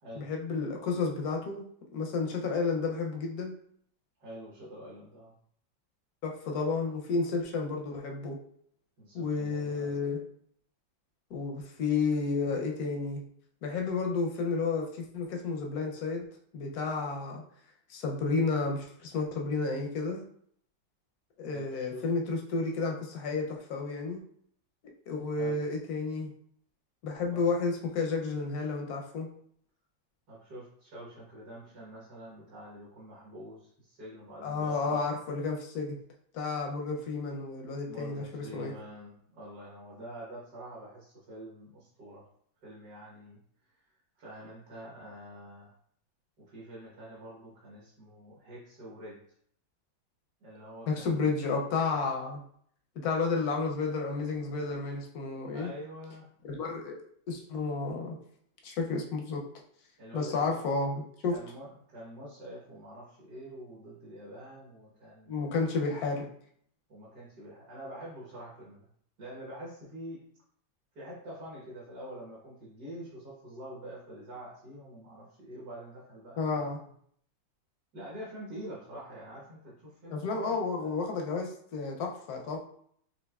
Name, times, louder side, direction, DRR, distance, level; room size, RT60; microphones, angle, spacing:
voice 1, 0.1-1.7 1.9-3.5 6.2-8.4 9.1-10.2 11.3-13.2 13.6-16.3 16.5-17.4 17.9-20.2 21.4-24.2 25.1-26.3 27.0-29.3 34.4-36.0 36.3-38.7 50.9-52.4 53.0-55.7 56.4-57.0 57.3-58.2 58.6-59.4 60.1-61.4 65.3-66.3 76.4-76.8 80.1-82.6, left 4 dB, 70° left, 1 dB, 0.9 m, -31 dB
voice 2, 4.2-5.3 9.0-10.0 21.5-22.0 25.3-25.6 27.3-27.4 30.3-35.0 37.9-42.3 42.6-43.4 44.2-45.7 46.4-49.2 50.4-51.3 55.5-56.3 60.0-60.6 61.3-65.6 66.9-68.9 69.2-70.2 70.9-76.9 77.9-81.0, equal, 60° right, -6 dB, 1.6 m, -46 dB
6.2 x 2.6 x 2.3 m, 0.64 s
omnidirectional pair, 2.1 m